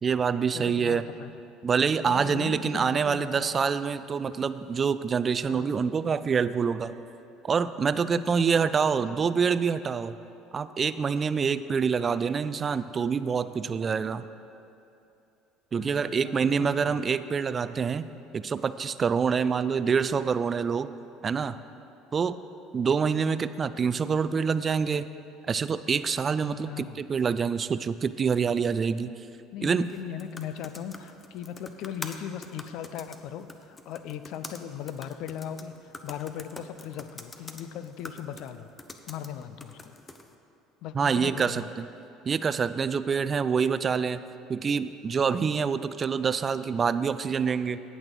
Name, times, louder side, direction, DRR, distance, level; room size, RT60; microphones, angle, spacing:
voice 1, 0.0-1.0 1.6-7.0 7.4-10.2 10.5-14.2 15.7-18.1 18.3-20.9 21.2-21.6 22.1-22.4 22.7-25.1 25.5-29.1 29.6-29.9 40.9-41.9 42.2-44.2 44.5-47.8, right 6 dB, 35° right, 14 dB, 0.3 m, -26 dB
voice 2, 0.5-1.4 2.1-3.6 5.5-5.8 8.1-9.1 15.8-17.0 26.6-27.0 29.5-38.7 39.1-40.0 40.8-41.7, left 9 dB, 60° left, 12 dB, 0.5 m, -39 dB
sound 1, 29.8-40.3, left 3 dB, 25° left, 0.8 m, -46 dB
17.5 x 6.2 x 3.9 m, 2.8 s
hypercardioid pair, 65°, 0 cm